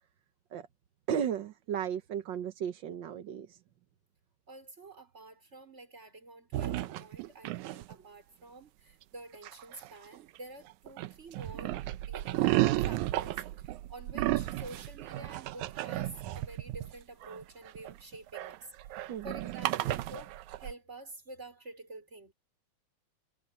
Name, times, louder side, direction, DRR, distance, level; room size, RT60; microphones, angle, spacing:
voice 1, 1.1-3.6 19.1-19.3, right 8 dB, 65° right, 1.1 m, -35 dB
voice 2, 4.5-11.8 12.1-12.5 12.8-13.4 13.9-18.7 18.9-22.3, right 2 dB, 20° right, 5.3 m, -49 dB
sound 1, 6.5-7.9 9.4-10.4 10.7-20.7, right 16 dB, 85° right, 2.2 m, -33 dB
omnidirectional pair, 3.4 m